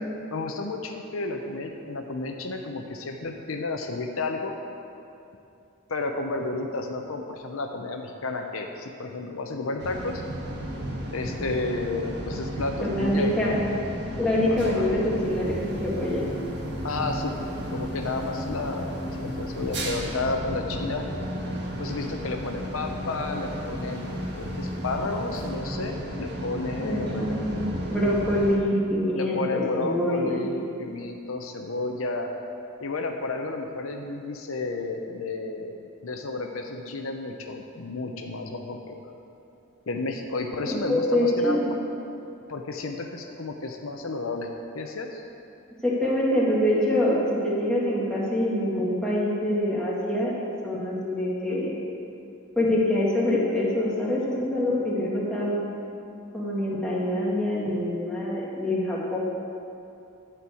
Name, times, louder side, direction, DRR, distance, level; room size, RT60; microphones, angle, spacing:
voice 1, 0.3-4.5 5.9-10.2 11.1-13.5 14.5-14.9 16.8-17.3 17.7-21.0 21.8-27.3 29.1-32.3 32.8-35.8 36.0-39.0 39.9-41.8 42.5-44.5 44.7-45.2, left 3 dB, 70° left, 3 dB, 0.7 m, -32 dB
sound 1, 9.8-28.6, equal, 55° right, 1.5 m, -33 dB
voice 2, 12.8-13.6 14.2-16.2 26.8-27.6 27.9-30.4 40.9-41.7 45.8-50.3 50.6-51.7 52.6-55.6 56.3-59.2, left 1 dB, 5° left, -7 dB, 2.0 m, -25 dB
12.0 x 4.6 x 8.3 m, 2.7 s
head